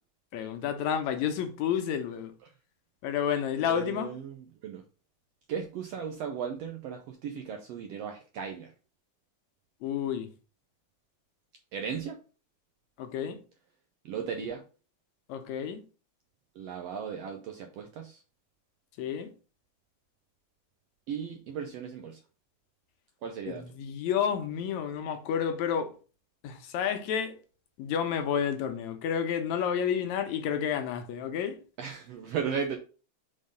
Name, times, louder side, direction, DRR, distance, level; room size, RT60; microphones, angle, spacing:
voice 1, 0.3-2.3 3.0-4.1 9.8-10.3 13.0-13.4 15.3-15.8 19.0-19.3 23.5-25.9 26.4-27.4 27.8-31.6, left 8 dB, 75° left, 1.9 m, -30 dB
voice 2, 3.6-4.8 5.5-8.7 11.7-12.2 14.0-14.6 16.5-18.2 21.1-22.2 23.2-23.6 31.8-32.8, right 7 dB, 70° right, 1.5 m, -36 dB
5.4 x 3.9 x 5.0 m
omnidirectional pair, 3.6 m